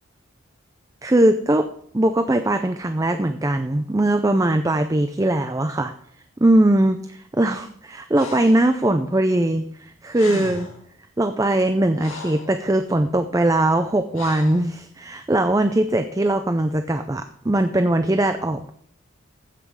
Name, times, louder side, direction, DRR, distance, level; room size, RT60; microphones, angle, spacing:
voice 1, 1.0-1.7 1.9-5.9 6.4-10.7 11.2-18.7, right 1 dB, 15° right, 8 dB, 0.4 m, -20 dB
Breathing, 8.1-8.7 9.8-9.9 10.1-10.8 11.5-12.5 14.1-14.7, left 3 dB, 80° left, 1.8 m, -36 dB
15.0 x 5.9 x 4.7 m, 0.67 s
head